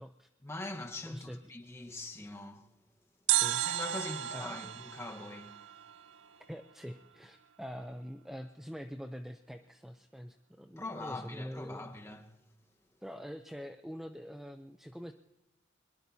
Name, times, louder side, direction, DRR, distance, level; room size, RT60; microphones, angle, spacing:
voice 1, 0.4-2.7 3.6-5.6 10.8-12.4, left 2 dB, 15° left, 1.3 m, -42 dB
voice 2, 1.1-1.4 3.3-3.6 4.3-4.6 6.5-11.9 13.0-15.1, equal, ahead, 0.6 m, -44 dB
sound 1, 3.3-6.4 6.6-6.7, right 13 dB, 65° right, 0.5 m, -33 dB
24.0 x 21.5 x 2.8 m
head